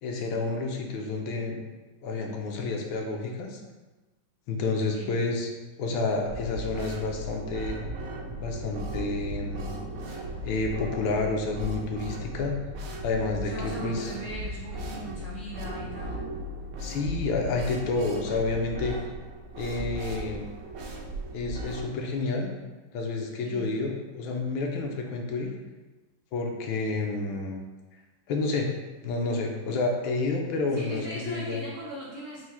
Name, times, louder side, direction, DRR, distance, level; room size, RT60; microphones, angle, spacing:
voice 1, 0.0-1.6 2.0-3.6 4.5-5.5 5.8-7.8 8.4-9.7 10.4-12.5 13.0-14.1 16.8-19.0 19.6-20.5 21.3-22.5 22.9-25.5 26.3-27.6 28.3-28.7 29.0-31.6, left 3 dB, 80° left, 2 dB, 1.4 m, -29 dB
sound 1, 6.3-21.8, equal, 75° right, 1.3 m, -37 dB
voice 2, 13.4-16.3 18.1-18.4 23.4-23.7 30.7-32.5, right 1 dB, 60° right, -8 dB, 0.8 m, -39 dB
4.7 x 2.0 x 4.1 m, 1.2 s
omnidirectional pair, 2.2 m